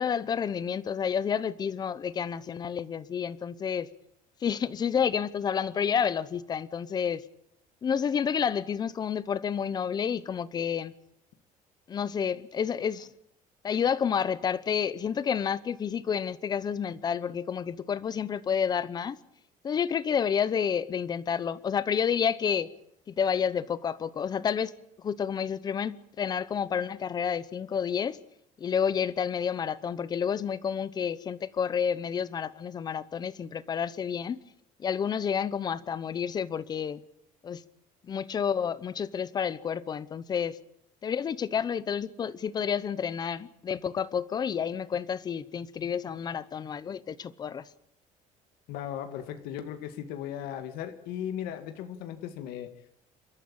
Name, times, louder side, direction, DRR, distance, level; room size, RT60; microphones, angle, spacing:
voice 1, 0.0-3.9 4.4-7.2 7.8-10.9 11.9-13.1 13.6-19.2 19.6-22.7 23.1-24.7 25.0-28.2 28.6-34.4 34.8-37.0 37.4-37.6 38.0-40.6 41.0-47.6, left 7 dB, 25° left, 0.8 m, -30 dB
voice 2, 48.7-53.0, left 10 dB, 85° left, 2.0 m, -37 dB
28.5 x 13.5 x 8.8 m
cardioid pair, 170°, 15 cm